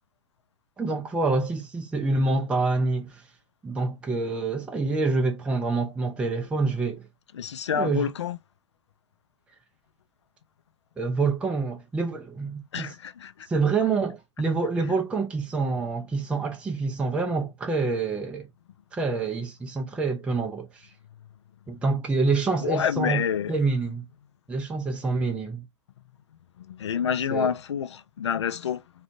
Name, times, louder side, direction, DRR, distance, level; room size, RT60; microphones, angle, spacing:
voice 1, 0.8-3.2 3.6-7.0 7.7-8.1 11.0-12.9 13.5-18.5 18.9-20.9 21.7-23.2 23.5-24.0 24.5-25.6 27.3-27.5, right 3 dB, 5° right, 0.5 m, -27 dB
voice 2, 7.3-8.4 12.7-13.3 22.6-23.5 26.7-28.8, left 7 dB, 70° left, 0.4 m, -28 dB
3.6 x 2.3 x 2.6 m
figure-of-eight pair, 110°, 15 cm